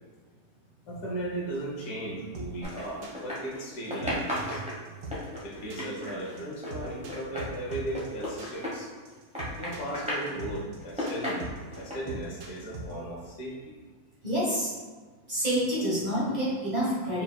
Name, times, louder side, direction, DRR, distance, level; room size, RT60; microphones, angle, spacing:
voice 1, 0.9-4.6 5.4-8.9 9.6-13.8, right 1 dB, 70° left, -3 dB, 1.4 m, -36 dB
sound 1, 2.3-12.9, right 2 dB, 90° right, 1.4 m, -40 dB
sound 2, 2.6-3.6 3.9-9.1 9.3-10.3 10.8-11.9, left 1 dB, 5° right, 0.6 m, -34 dB
voice 2, 14.2-14.7 15.3-17.2, equal, 25° right, -9 dB, 1.4 m, -27 dB
4.5 x 4.2 x 2.2 m, 1.4 s
omnidirectional pair, 1.7 m